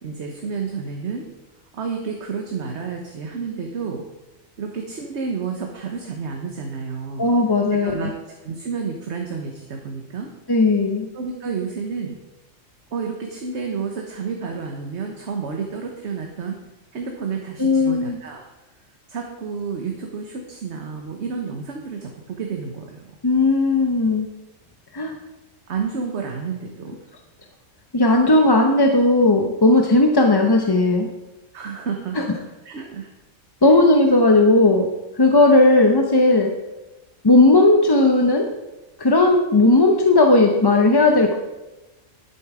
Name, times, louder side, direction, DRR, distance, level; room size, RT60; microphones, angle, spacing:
voice 1, 0.0-1.3 1.7-4.0 4.6-7.3 7.8-8.1 8.4-10.3 11.1-12.2 12.9-16.6 16.9-18.5 19.1-23.0 25.7-26.9 31.5-32.2 32.6-33.1, right 5 dB, 60° right, 2 dB, 1.3 m, -30 dB
voice 2, 7.2-8.1 10.5-11.1 17.6-18.2 23.2-24.3 24.9-25.2 27.9-31.1 32.1-32.2 33.6-34.9 35.1-36.5 37.2-38.5 39.0-41.3, left 2 dB, 25° left, 3 dB, 0.7 m, -16 dB
11.5 x 7.7 x 4.9 m, 1.0 s
omnidirectional pair, 1.4 m